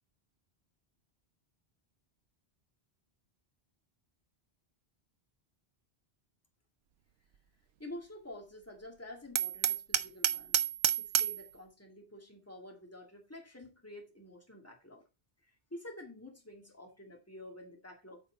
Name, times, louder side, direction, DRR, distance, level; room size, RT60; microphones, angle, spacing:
voice 1, 7.8-10.6 11.0-15.0 15.4-18.2, left 1 dB, 15° left, 2.2 m, -49 dB
Hammer, 9.4-11.4, right 10 dB, 90° right, 0.9 m, -30 dB
8.9 x 6.0 x 4.0 m
omnidirectional pair, 1.1 m